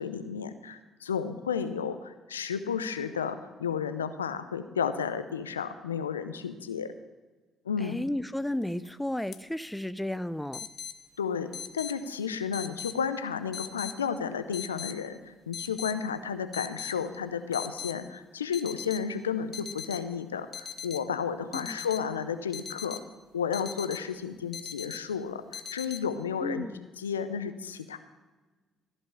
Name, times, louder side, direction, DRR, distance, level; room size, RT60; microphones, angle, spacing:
voice 1, 0.0-6.9 7.7-8.0 11.2-11.5 11.7-23.0 23.3-26.7 27.0-28.0, left 7 dB, 85° left, 11 dB, 0.5 m, -32 dB
voice 2, 7.8-10.7 21.5-21.8 26.4-26.8, left 1 dB, 5° left, 16 dB, 0.4 m, -33 dB
sound 1, 8.6-8.9 9.3-9.4 10.5-11.0 11.5-12.0 12.5-13.0 13.5-14.0 14.5-15.0 15.5-16.0 16.5-17.0 17.5-18.0 18.5-19.0 19.5-20.0 20.5-21.0 21.5-22.0 22.5-23.0 23.5-24.0 24.5-25.0 25.5-26.0, left 7 dB, 50° left, 0.9 m, -39 dB
14.0 x 5.4 x 7.2 m, 1.2 s
figure-of-eight pair, 50°, 0 cm